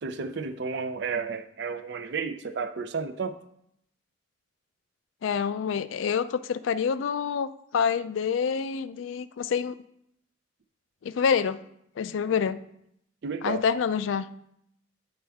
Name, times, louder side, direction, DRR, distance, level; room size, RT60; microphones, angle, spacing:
voice 1, 0.0-3.4 13.2-13.6, right 5 dB, 65° right, 10 dB, 0.5 m, -32 dB
voice 2, 5.2-9.8 11.0-11.6 12.0-12.6 13.4-14.3, left 6 dB, 85° left, 14 dB, 0.3 m, -27 dB
8.7 x 4.3 x 3.5 m, 0.75 s
head